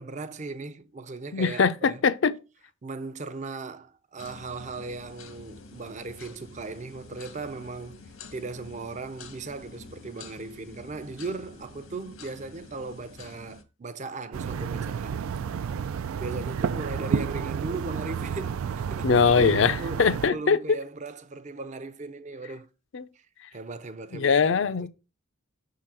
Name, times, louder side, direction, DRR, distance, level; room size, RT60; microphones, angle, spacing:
voice 1, 0.0-2.0 2.8-15.3 16.2-19.1 19.4-20.0 20.3-22.7 23.5-24.9, right 3 dB, 35° right, 0.5 m, -38 dB
voice 2, 1.3-2.3 19.0-20.8 22.9-23.0 24.1-24.9, left 5 dB, 65° left, 0.5 m, -22 dB
sound 1, 4.2-13.6, left 3 dB, 85° left, 1.0 m, -47 dB
sound 2, 14.3-20.3, right 7 dB, 85° right, 0.4 m, -31 dB
5.9 x 3.8 x 4.3 m
head